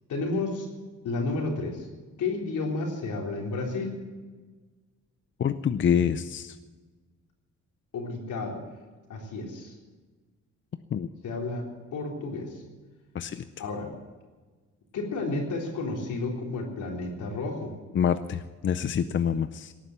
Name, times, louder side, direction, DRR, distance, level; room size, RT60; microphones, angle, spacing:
voice 1, 0.1-0.7 1.0-1.9 2.2-4.0 7.9-8.6 9.1-9.7 11.2-11.6 11.9-12.6 13.6-13.9 14.9-17.7, left 3 dB, 80° left, 0 dB, 3.9 m, -31 dB
voice 2, 5.4-6.6 10.9-11.1 13.1-13.4 17.9-19.7, left 8 dB, 40° left, 11 dB, 0.6 m, -26 dB
18.0 x 9.9 x 8.2 m, 1.3 s
wide cardioid pair, 160°, 30 cm